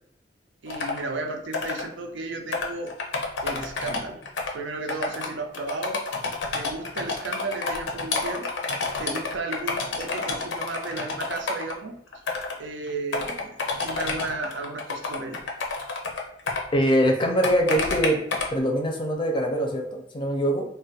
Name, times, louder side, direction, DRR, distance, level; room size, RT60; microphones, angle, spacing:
voice 1, 0.6-2.9 3.4-4.2 4.5-6.0 6.5-8.5 9.0-12.0 12.6-15.4, right 3 dB, 75° right, 4 dB, 0.5 m, -34 dB
sound 1, 0.7-1.0 1.5-1.8 2.5-4.5 4.9-5.3 5.5-11.7 12.1-12.6 12.9-16.6 17.4-18.5, left 3 dB, 80° left, 0.6 m, -29 dB
voice 2, 16.7-18.2 18.5-20.6, equal, 25° left, 2 dB, 0.5 m, -23 dB
2.4 x 2.1 x 3.9 m, 0.72 s
head